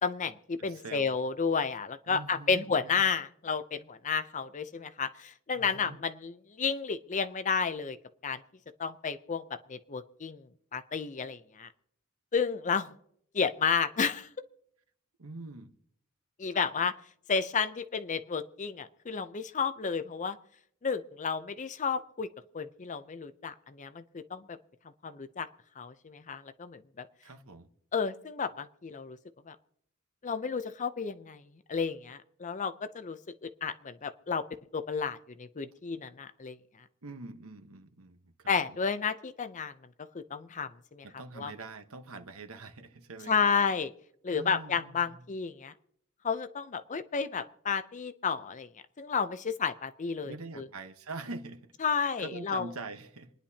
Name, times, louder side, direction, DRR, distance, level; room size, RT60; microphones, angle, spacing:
voice 1, 0.0-8.0 8.2-8.4 8.8-10.5 10.7-11.7 12.3-12.9 13.3-14.3 16.4-16.9 17.3-20.4 20.8-22.3 22.5-24.6 25.0-25.5 25.8-27.1 27.9-29.2 29.5-29.6 30.2-31.4 31.7-34.4 34.7-36.6 38.5-39.7 40.1-41.1 41.4-41.5 43.3-43.9 44.2-45.7 46.2-48.7 49.0-50.7 51.8-52.7, left 5 dB, 35° left, 0.6 m, -32 dB
voice 2, 0.6-1.2 2.1-3.0 5.5-6.0 15.2-15.7 27.2-27.7 37.0-38.8 41.0-43.5 44.3-45.2 50.2-53.3, right 3 dB, 70° right, 1.1 m, -44 dB
27.5 x 10.5 x 2.8 m
head